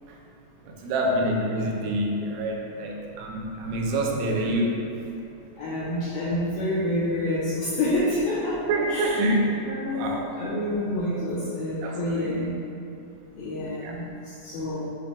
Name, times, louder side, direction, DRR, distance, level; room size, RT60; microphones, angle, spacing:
voice 1, 0.6-4.9 8.7-10.3 11.8-12.3 13.8-13.9, right 1 dB, 90° right, -1 dB, 3.1 m, -27 dB
voice 2, 5.6-9.2 9.7-12.7 13.3-14.9, left 1 dB, 85° left, -8 dB, 2.1 m, -28 dB
8.6 x 4.8 x 2.3 m, 2.7 s
omnidirectional pair, 5.3 m